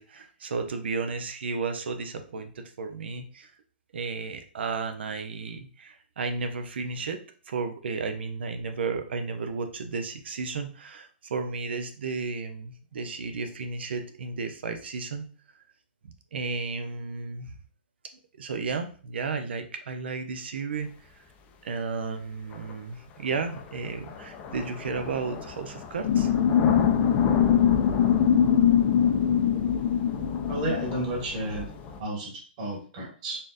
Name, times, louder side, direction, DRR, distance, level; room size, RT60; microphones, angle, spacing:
voice 1, 0.0-3.5 3.9-7.2 7.5-15.3 16.0-17.5 18.4-20.9 21.6-26.3, right 4 dB, 75° right, 6 dB, 0.7 m, -33 dB
sound 1, 21.4-21.5 22.5-32.0, left 5 dB, 25° left, 0.5 m, -36 dB
sound 2, 26.0-31.0, left 9 dB, 60° left, 0.7 m, -22 dB
voice 2, 30.5-31.6 32.0-32.3 32.6-33.4, right 1 dB, 45° right, -3 dB, 1.9 m, -31 dB
4.3 x 3.6 x 2.6 m, 0.40 s
hypercardioid pair, 135°, 6 cm